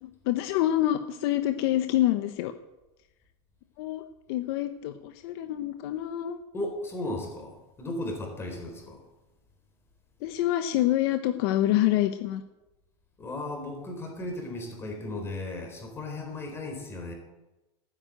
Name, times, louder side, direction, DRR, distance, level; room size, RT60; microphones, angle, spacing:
voice 1, 0.0-2.5 3.8-4.0 4.3-6.4 10.2-12.4, left 13 dB, 60° left, 9 dB, 1.0 m, -26 dB
voice 2, 6.5-9.0 13.2-17.1, left 2 dB, 15° left, 3 dB, 4.2 m, -35 dB
12.5 x 9.9 x 9.0 m, 1.0 s
supercardioid pair, 145°, 14 cm